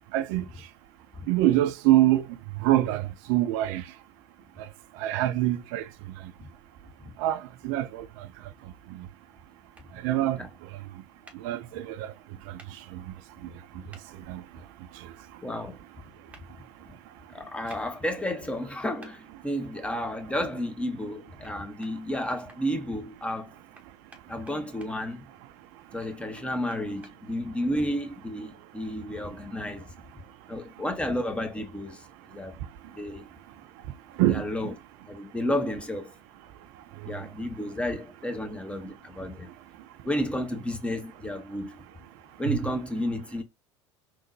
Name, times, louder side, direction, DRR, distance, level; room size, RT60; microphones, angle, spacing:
voice 1, 0.1-0.5 1.3-2.3 2.6-3.8 5.0-5.9 7.2-8.3 10.0-10.4 11.4-12.1 12.5-12.6 12.9-13.0 14.3-14.4 34.2-34.4 37.0-37.1 42.5-42.6, right 14 dB, 55° right, 0.4 m, -25 dB
sound 1, 9.7-9.9 11.2-11.4 12.6-12.7 13.9-14.0 16.3-16.4 17.7-17.8 19.0-19.1 21.4-21.5 21.8-22.6 23.7-24.9 26.0-27.1, right 2 dB, 10° right, 1.1 m, -51 dB
voice 2, 15.4-15.8 17.3-23.5 24.3-25.3 25.9-29.9 30.5-32.6 32.9-33.2 34.3-34.7 35.1-36.1 37.0-39.5 40.0-41.8 42.4-43.4, left 1 dB, 5° left, 0.8 m, -32 dB
3.7 x 3.0 x 2.6 m
hypercardioid pair, 75°, 16 cm